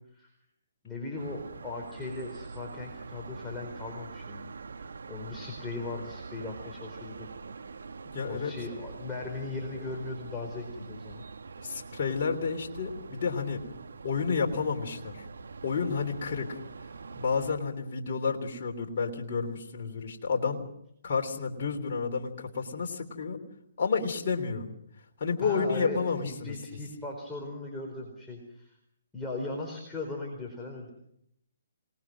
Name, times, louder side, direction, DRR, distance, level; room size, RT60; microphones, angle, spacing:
voice 1, 0.8-7.3 7.6-7.7 8.2-11.2 25.4-28.8 29.1-30.9, left 2 dB, 10° left, -2 dB, 4.4 m, -38 dB
sound 1, 1.2-17.5, right 4 dB, 75° right, 1.3 m, -44 dB
voice 2, 8.1-8.5 11.6-13.6 14.0-15.2 15.6-16.6 17.1-20.6 21.0-23.4 23.8-24.7 25.2-26.5, left 5 dB, 50° left, 1 dB, 3.4 m, -30 dB
27.0 x 20.0 x 6.2 m, 0.73 s
figure-of-eight pair, 135°, 0 cm